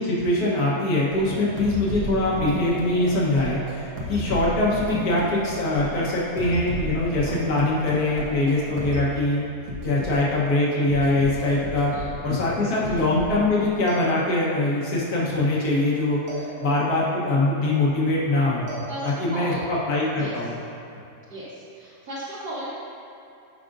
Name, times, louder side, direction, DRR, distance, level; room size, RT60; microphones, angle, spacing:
voice 1, 0.0-9.4 9.8-11.9 12.2-18.7 19.0-20.5, left 2 dB, 70° left, -6 dB, 1.8 m, -23 dB
sound 1, 1.1-9.1 9.7-10.2 10.9-12.3 12.7-13.5 13.9-14.7 16.3-17.1 18.7-19.5, equal, 90° right, 1.7 m, -34 dB
voice 2, 11.9-12.2 12.8-13.1 18.9-19.7 20.2-20.5 21.3-22.7, right 1 dB, 75° right, -11 dB, 2.0 m, -36 dB
14.0 x 5.0 x 2.6 m, 2.7 s
omnidirectional pair, 1.7 m